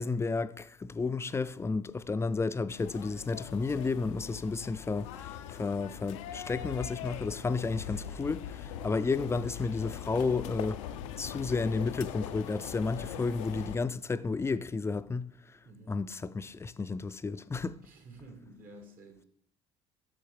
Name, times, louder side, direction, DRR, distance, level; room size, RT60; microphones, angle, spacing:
voice 1, 0.0-10.8 11.2-17.8, left 4 dB, 15° left, 0.4 m, -32 dB
sound 1, 2.7-13.8, left 9 dB, 80° left, 0.4 m, -41 dB
voice 2, 15.6-16.0 17.8-19.2, right 2 dB, 60° right, 1.7 m, -51 dB
8.6 x 6.2 x 3.4 m
hypercardioid pair, 60°, 16 cm